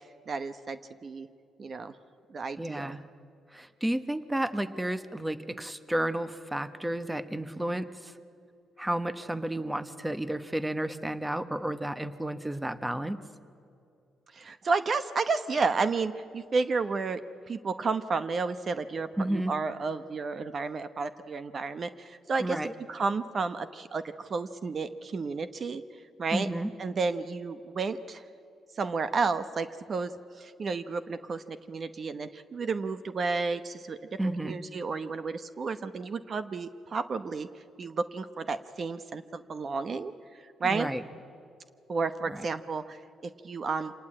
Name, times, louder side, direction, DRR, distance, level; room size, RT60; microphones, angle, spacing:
voice 1, 0.3-1.3 1.6-1.9 2.3-3.0 14.3-22.6 22.9-25.8 26.2-26.5 26.8-28.2 28.8-30.1 30.4-34.0 34.4-37.5 37.8-40.1 40.6-40.9 41.9-43.0 43.4-43.9, right 4 dB, 45° right, 12 dB, 0.9 m, -31 dB
voice 2, 2.6-3.0 3.5-8.1 8.8-13.2 19.2-19.5 22.4-22.7 26.3-26.7 34.2-34.6 40.6-41.0 42.3-42.4, right 1 dB, 10° right, 12 dB, 1.1 m, -32 dB
26.5 x 19.0 x 8.7 m, 2.5 s
cardioid pair, 95°, 0 cm